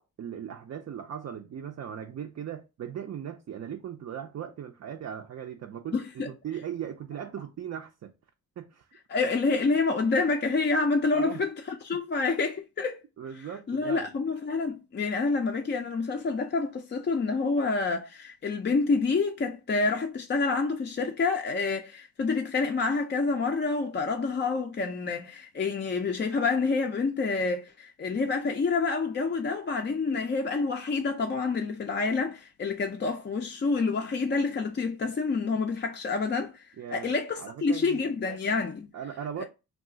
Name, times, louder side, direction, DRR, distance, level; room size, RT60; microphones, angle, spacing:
voice 1, 0.2-8.1 8.6-8.9 11.1-11.4 13.2-14.1 36.8-38.0 38.9-39.4, right 9 dB, 45° right, 0.4 m, -38 dB
voice 2, 5.9-6.3 9.1-13.0 13.3-38.9 39.4-39.5, left 4 dB, 30° left, 0.4 m, -28 dB
2.4 x 2.3 x 3.7 m
cardioid pair, 70°, 37 cm